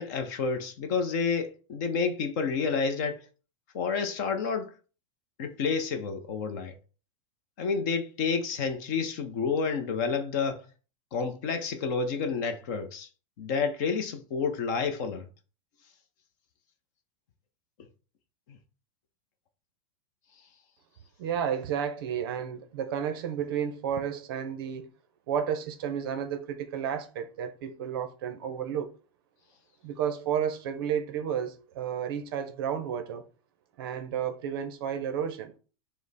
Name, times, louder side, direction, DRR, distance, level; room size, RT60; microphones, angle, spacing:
voice 1, 0.0-3.2 3.7-4.7 5.4-6.7 7.6-10.6 11.1-13.1 13.4-15.2 18.5-18.6, left 5 dB, 35° left, 0.5 m, -29 dB
voice 2, 21.2-24.9 25.3-28.9 29.8-33.2 33.8-35.5, right 8 dB, 45° right, 0.6 m, -32 dB
5.1 x 2.0 x 4.0 m
supercardioid pair, 180°, 17 cm